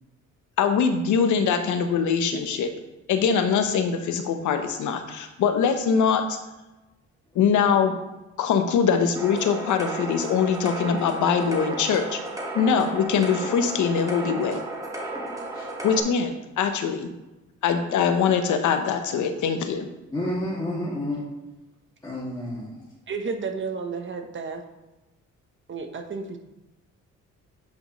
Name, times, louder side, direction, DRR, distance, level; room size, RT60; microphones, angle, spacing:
voice 1, 0.6-2.7 3.1-6.4 7.3-7.9 8.4-12.2 12.5-14.6 15.8-17.1 17.6-19.9, left 6 dB, 75° left, 7 dB, 0.9 m, -23 dB
sound 1, 9.2-16.0, right 2 dB, 10° right, 1.5 m, -34 dB
voice 2, 20.1-21.2 22.0-22.9, left 1 dB, 10° left, -8 dB, 2.2 m, -30 dB
voice 3, 23.1-24.6 25.7-26.4, right 4 dB, 40° right, 6 dB, 1.0 m, -32 dB
8.6 x 5.2 x 3.1 m, 1.0 s
cardioid pair, 90°, 30 cm